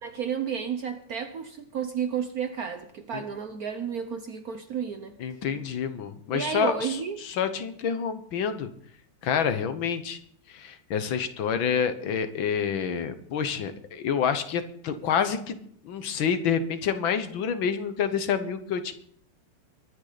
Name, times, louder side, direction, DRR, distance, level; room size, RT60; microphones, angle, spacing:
voice 1, 0.0-5.2 6.3-7.2, right 7 dB, 60° right, 8 dB, 1.0 m, -32 dB
voice 2, 5.2-8.7 9.2-10.2 10.5-15.6 15.8-18.9, left 7 dB, 70° left, 10 dB, 1.7 m, -28 dB
22.5 x 9.5 x 4.0 m, 0.64 s
omnidirectional pair, 2.3 m